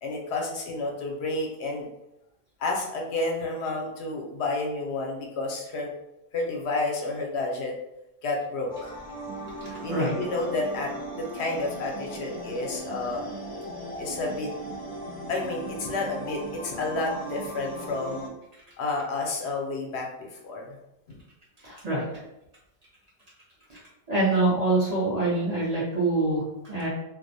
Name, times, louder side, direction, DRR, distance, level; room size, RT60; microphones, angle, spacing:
voice 1, 0.0-1.9 2.6-5.9 6.3-7.7 8.2-8.9 9.8-13.3 14.0-14.5 15.3-18.2 18.8-20.8 21.1-21.2, left 2 dB, 80° left, 0 dB, 0.9 m, -30 dB
sound 1, 8.7-18.3, right 1 dB, 35° left, 0.6 m, -38 dB
voice 2, 9.6-10.1 21.6-22.1 23.7-23.8 24.1-26.9, right 2 dB, 40° right, -6 dB, 0.7 m, -25 dB
2.4 x 2.0 x 2.6 m, 0.87 s
omnidirectional pair, 1.1 m